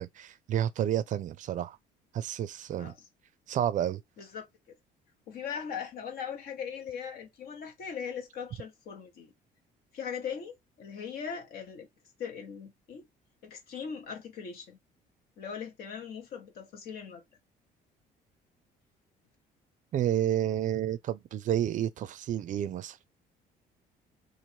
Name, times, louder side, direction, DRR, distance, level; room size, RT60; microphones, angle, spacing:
voice 1, 0.0-1.8 2.1-2.9 3.5-4.0 19.9-23.0, right 11 dB, 50° right, 0.4 m, -30 dB
voice 2, 4.2-4.7 5.3-9.3 9.9-11.9 12.2-13.1 13.4-14.8 15.4-17.2, left 7 dB, 65° left, 1.0 m, -40 dB
3.1 x 2.5 x 2.7 m
cardioid pair, 110°, 17 cm